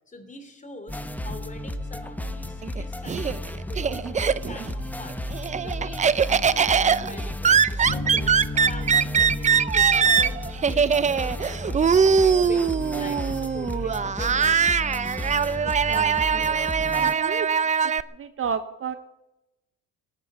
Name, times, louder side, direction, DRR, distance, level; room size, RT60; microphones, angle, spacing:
voice 1, 0.1-5.2 5.5-8.3 8.6-12.0 12.3-12.7 12.9-15.2, left 2 dB, 20° left, 9 dB, 3.0 m, -43 dB
sound 1, 0.9-17.1, left 1 dB, 5° left, 1.2 m, -33 dB
Laughter, 2.6-4.7 5.1-18.0, right 6 dB, 20° right, 0.5 m, -22 dB
Bass guitar, 7.9-11.6, left 2 dB, 45° left, 4.3 m, -36 dB
voice 2, 15.6-16.6 17.0-17.5 17.8-18.9, right 7 dB, 35° right, 10 dB, 0.9 m, -33 dB
18.0 x 9.1 x 8.8 m, 0.95 s
cardioid pair, 110°, 37 cm